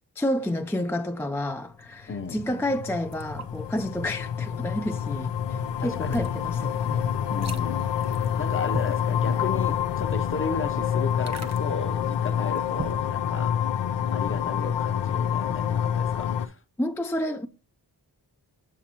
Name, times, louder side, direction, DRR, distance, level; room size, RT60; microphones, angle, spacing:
voice 1, 0.2-7.1 16.8-17.5, left 1 dB, 5° left, 0.3 m, -30 dB
sound 1, 2.1-16.5, left 9 dB, 85° left, 0.6 m, -27 dB
voice 2, 2.1-2.4 5.8-6.2 7.3-13.6 14.1-16.6, left 3 dB, 30° left, 0.7 m, -34 dB
sound 2, 3.1-13.1, right 3 dB, 40° right, 0.9 m, -43 dB
7.4 x 7.0 x 2.8 m
wide cardioid pair, 105°, 41 cm